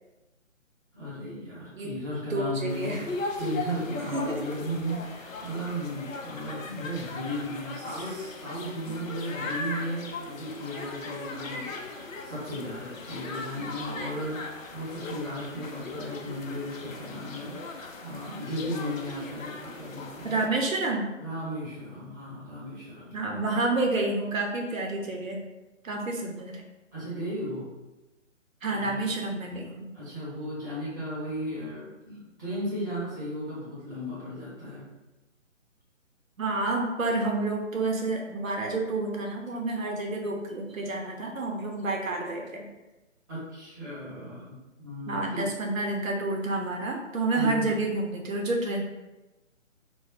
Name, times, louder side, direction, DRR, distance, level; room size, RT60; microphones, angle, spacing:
voice 1, 0.9-3.1 3.4-11.7 12.2-20.5 21.2-23.5 26.9-27.7 28.7-29.0 29.9-34.8 43.3-45.5 47.3-47.7, equal, 15° right, -9 dB, 0.7 m, -35 dB
voice 2, 2.3-3.0 4.0-4.4 8.9-9.0 20.2-21.1 23.1-25.4 25.8-26.6 28.6-29.9 36.4-42.7 45.1-48.8, right 2 dB, 90° right, 1 dB, 0.6 m, -29 dB
sound 1, 2.7-20.5, left 3 dB, 85° left, 0.5 m, -39 dB
2.2 x 2.0 x 3.6 m, 1.1 s
figure-of-eight pair, 145°, 39 cm